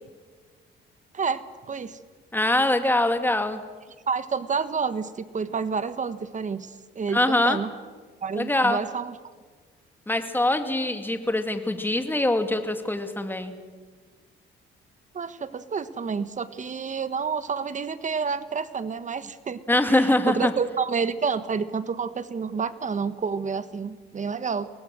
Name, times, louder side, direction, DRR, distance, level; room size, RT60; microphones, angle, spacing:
voice 1, 1.1-2.0 4.1-7.7 8.2-9.1 15.1-24.7, right 5 dB, 40° right, 13 dB, 1.4 m, -29 dB
voice 2, 2.3-3.6 7.1-7.6 8.3-8.8 10.1-13.5 19.7-20.5, left 1 dB, 10° left, 7 dB, 2.4 m, -23 dB
23.5 x 19.0 x 7.7 m, 1.5 s
cardioid pair, 90°, 20 cm